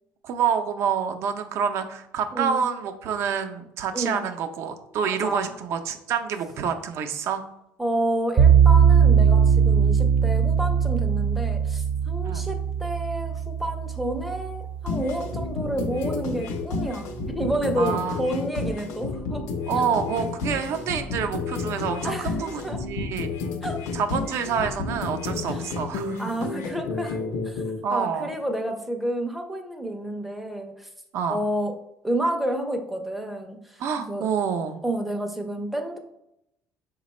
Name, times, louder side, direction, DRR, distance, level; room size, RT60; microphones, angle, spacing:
voice 1, 0.2-7.4 12.2-12.4 17.8-18.4 19.7-23.4 23.9-26.2 27.8-28.3 31.1-31.4 33.8-34.8, right 7 dB, 60° right, 7 dB, 0.5 m, -27 dB
voice 2, 2.3-2.6 3.9-4.2 5.0-5.5 7.8-19.5 22.0-22.8 23.6-23.8 25.5-25.6 26.2-27.6 27.9-30.9 31.3-31.7 32.0-33.8 34.1-34.3 34.8-36.0, right 1 dB, ahead, 4 dB, 0.5 m, -30 dB
sound 1, 8.4-15.5, right 7 dB, 30° right, 0.8 m, -20 dB
sound 2, 14.9-27.8, left 4 dB, 80° left, 0.6 m, -31 dB
4.9 x 2.2 x 4.1 m, 0.82 s
cardioid pair, 145°, 5 cm